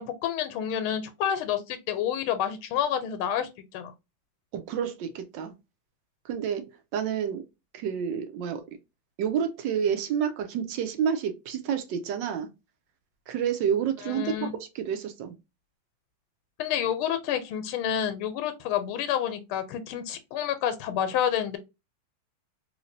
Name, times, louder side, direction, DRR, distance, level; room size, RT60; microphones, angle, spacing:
voice 1, 0.0-3.9 14.0-14.5 16.6-21.6, left 9 dB, 85° left, 1.4 m, -29 dB
voice 2, 4.5-5.5 6.2-6.7 6.9-7.4 7.7-8.6 9.2-12.5 13.3-14.2 14.6-15.3, right 8 dB, 75° right, 1.1 m, -29 dB
3.1 x 3.1 x 2.5 m
omnidirectional pair, 2.3 m